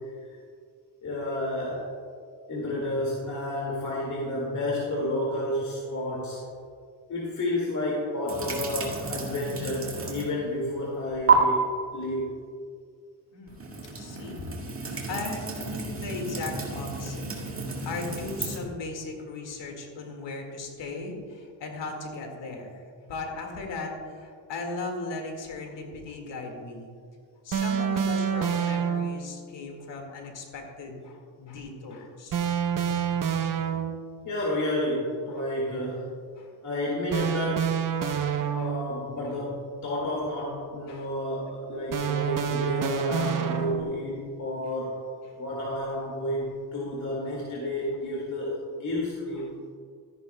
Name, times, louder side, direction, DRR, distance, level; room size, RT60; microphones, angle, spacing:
voice 1, 1.0-1.9 2.5-6.4 7.1-11.6 11.9-12.3 34.2-36.2 36.6-37.8 38.2-45.0 45.4-49.5, left 1 dB, 40° left, -4 dB, 2.1 m, -31 dB
sound 1, 8.3-10.4 10.7-11.3 13.5-18.6, right 5 dB, 30° right, 2.0 m, -31 dB
voice 2, 13.3-13.7 14.0-14.5 14.7-26.9 27.4-32.5 32.8-32.9 33.8-33.9 35.3-35.4 36.4-36.5 38.0-38.2 38.6-38.7 40.9-41.1 42.7-42.8 44.7-44.8 45.2-45.4, left 3 dB, 65° left, 2 dB, 2.0 m, -38 dB
sound 2, 27.5-29.3 32.3-34.2 37.1-39.1 41.9-44.1, right 8 dB, 45° right, 0.7 m, -28 dB
13.5 x 10.0 x 2.2 m, 2.1 s
cardioid pair, 105°, 46 cm